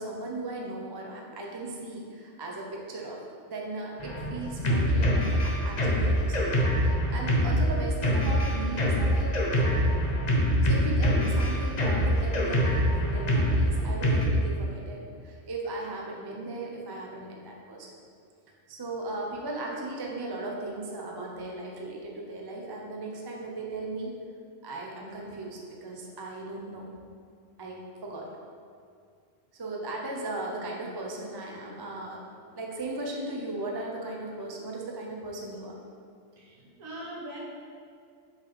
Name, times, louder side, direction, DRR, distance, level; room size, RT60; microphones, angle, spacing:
voice 1, 0.0-3.2 3.4-10.0 10.6-17.9 18.7-24.1 24.6-26.9 27.6-28.3 29.5-32.2 32.5-35.7, right 2 dB, 25° right, -1 dB, 0.6 m, -37 dB
Drum kit, 4.0-14.3, equal, 35° left, 0.9 m, -25 dB
voice 2, 36.4-37.4, right 1 dB, 85° right, -4 dB, 1.7 m, -41 dB
6.0 x 5.3 x 4.2 m, 2.2 s
omnidirectional pair, 1.4 m